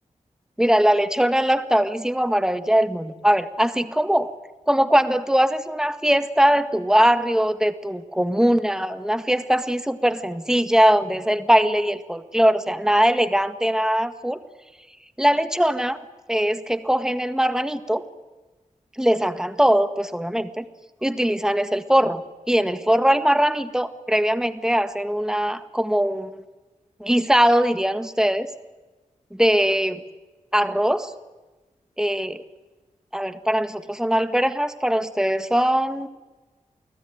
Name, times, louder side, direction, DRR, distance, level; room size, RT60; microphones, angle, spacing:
voice 1, 0.6-4.3 4.7-14.4 15.2-16.0 16.3-18.0 19.0-20.6 21.0-22.2 22.5-26.4 27.0-28.5 29.3-30.0 30.5-31.1 32.0-32.4 33.1-36.1, equal, 5° right, 10 dB, 1.7 m, -21 dB
29.5 x 20.0 x 9.3 m, 1.2 s
wide cardioid pair, 110°, 14 cm